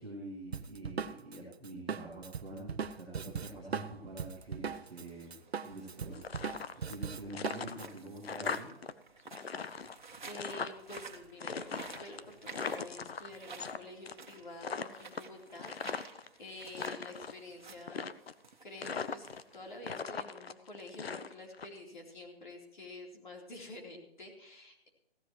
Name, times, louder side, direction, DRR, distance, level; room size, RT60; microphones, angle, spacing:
voice 1, 0.0-5.3 5.6-8.7, right 2 dB, ahead, -10 dB, 1.1 m, -46 dB
Drum kit, 0.5-5.0 5.3-7.9, right 6 dB, 85° right, 0.8 m, -39 dB
sound 1, 4.3-20.0, right 5 dB, 50° right, 1.4 m, -54 dB
sound 2, 6.1-7.0 7.3-8.9 9.2-11.0 11.4-13.8 14.1-14.3 14.6-16.3 16.6-17.4 17.9-18.5 18.8-19.6 19.8-21.7, left 5 dB, 75° left, 0.9 m, -39 dB
voice 2, 10.2-18.1 18.6-24.9, left 2 dB, 50° left, 0 dB, 3.7 m, -49 dB
16.0 x 12.0 x 3.1 m, 0.79 s
hypercardioid pair, 180°, 31 cm